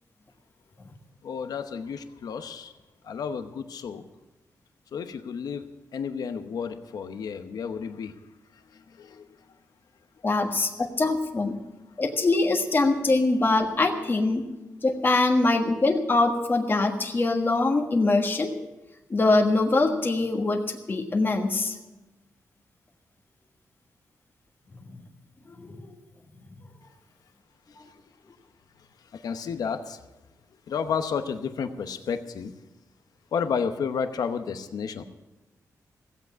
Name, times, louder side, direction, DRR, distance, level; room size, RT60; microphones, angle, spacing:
voice 1, 1.2-2.7 3.0-4.0 4.9-8.1 8.5-9.4 29.1-30.0 30.7-32.5 33.3-35.0, left 6 dB, 80° left, 9 dB, 0.9 m, -31 dB
voice 2, 10.2-11.6 12.0-14.4 14.8-18.5 19.1-21.8 24.9-25.0 25.6-25.9 27.8-27.9, left 2 dB, 35° left, 3 dB, 1.5 m, -23 dB
16.0 x 8.2 x 8.4 m, 1.1 s
wide cardioid pair, 110°, 6 cm